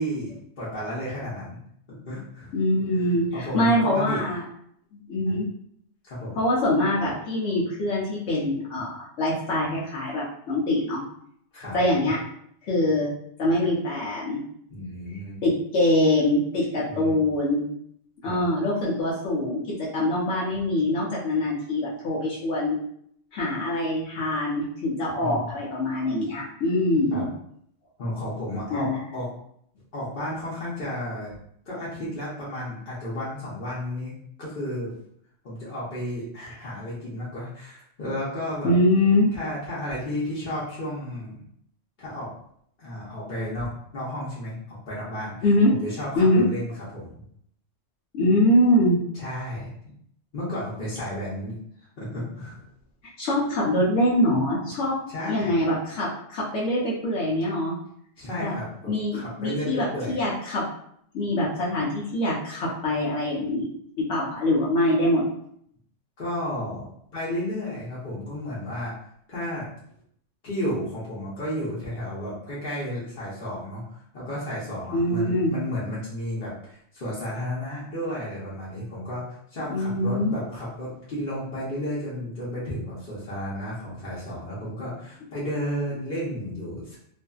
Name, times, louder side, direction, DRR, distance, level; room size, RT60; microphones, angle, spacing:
voice 1, 0.0-1.6 1.9-2.5 3.3-4.2 5.3-5.4 6.0-6.4 11.5-11.8 14.7-15.4 16.9-17.2 18.2-18.4 25.2-25.5 27.1-27.2 28.0-29.3 29.9-31.3 31.7-34.9 35.4-38.7 39.3-41.4 42.0-42.3 42.8-44.6 44.9-45.3 45.8-47.1 49.1-49.7 50.3-51.6 52.0-52.6 55.1-55.5 58.2-60.2 66.2-66.9 67.1-68.9 69.3-69.7 70.4-87.0, equal, 50° left, -8 dB, 0.9 m, -32 dB
voice 2, 2.5-4.4 5.1-5.5 6.4-11.0 11.7-12.2 12.6-13.1 13.4-14.4 15.4-17.7 18.2-22.7 23.3-27.3 28.7-29.0 38.6-39.3 45.4-45.7 46.2-46.4 48.1-49.0 53.2-55.0 55.3-57.8 58.4-58.5 58.9-60.7 61.1-63.7 64.0-65.2 74.9-75.5 79.7-80.3, left 1 dB, 75° left, -5 dB, 1.0 m, -24 dB
2.5 x 2.5 x 2.3 m, 0.68 s
omnidirectional pair, 1.3 m